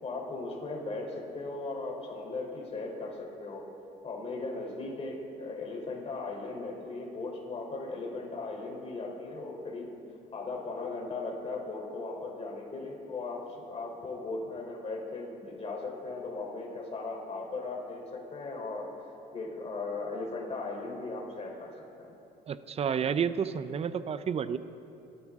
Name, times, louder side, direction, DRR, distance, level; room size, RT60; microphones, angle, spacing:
voice 1, 0.0-3.6 4.0-9.9 10.3-18.9 19.3-21.7 22.0-22.1, left 3 dB, 35° left, 0 dB, 3.6 m, -37 dB
voice 2, 22.5-24.6, right 7 dB, 35° right, 13 dB, 0.7 m, -30 dB
28.0 x 12.5 x 3.7 m, 2.9 s
cardioid pair, 110°, 17 cm